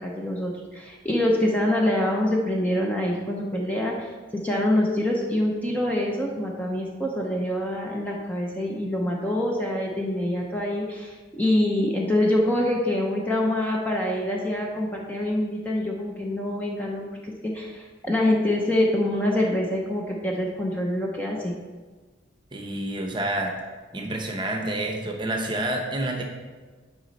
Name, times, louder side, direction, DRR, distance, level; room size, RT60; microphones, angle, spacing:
voice 1, 0.0-21.5, left 1 dB, 10° left, -2 dB, 0.7 m, -25 dB
voice 2, 22.5-23.5 23.9-26.2, right 1 dB, 25° right, 2 dB, 0.9 m, -28 dB
9.5 x 5.1 x 4.1 m, 1.4 s
head